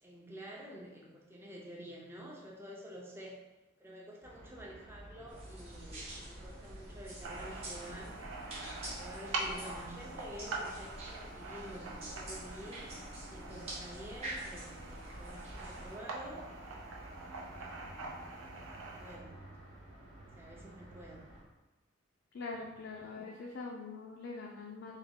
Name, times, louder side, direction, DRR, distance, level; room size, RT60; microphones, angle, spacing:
voice 1, 0.0-3.4 3.8-8.1 8.8-12.8 13.2-16.4 17.6-18.2 18.7-19.4 20.3-21.2, equal, 10° right, -3 dB, 0.5 m, -49 dB
sound 1, 4.2-21.4, right 1 dB, 60° right, 1.0 m, -53 dB
sound 2, 5.3-16.0, right 1 dB, 30° right, 0.8 m, -47 dB
sound 3, 7.2-19.2, right 2 dB, 85° right, 0.6 m, -44 dB
voice 2, 22.3-25.0, left 3 dB, 60° left, -1 dB, 0.4 m, -43 dB
3.5 x 2.3 x 3.5 m, 1.1 s
head